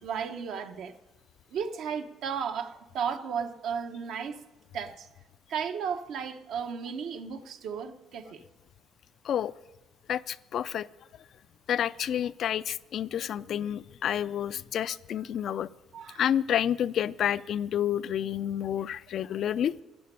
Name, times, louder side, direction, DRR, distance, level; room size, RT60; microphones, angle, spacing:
voice 1, 0.0-0.9 1.5-4.4 4.7-5.1 5.5-8.4 14.9-15.0 15.5-15.6 15.9-16.2, right 7 dB, 65° right, 1.0 m, -34 dB
voice 2, 10.1-10.9 11.7-15.7 16.2-19.7, left 10 dB, 55° left, 0.4 m, -29 dB
12.0 x 7.6 x 9.9 m
cardioid pair, 120°, 0 cm